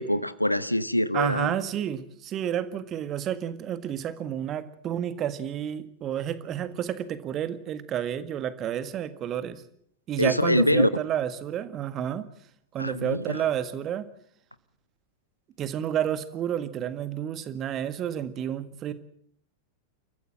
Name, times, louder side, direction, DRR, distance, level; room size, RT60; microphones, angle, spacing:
voice 1, 0.0-1.6 10.2-10.9 12.8-13.4, left 1 dB, 90° left, 17 dB, 0.9 m, -24 dB
voice 2, 1.1-9.6 10.1-12.2 12.7-14.1 15.6-18.9, right 10 dB, 30° right, 12 dB, 1.7 m, -30 dB
29.0 x 14.5 x 7.7 m, 0.68 s
figure-of-eight pair, 90°, 0 cm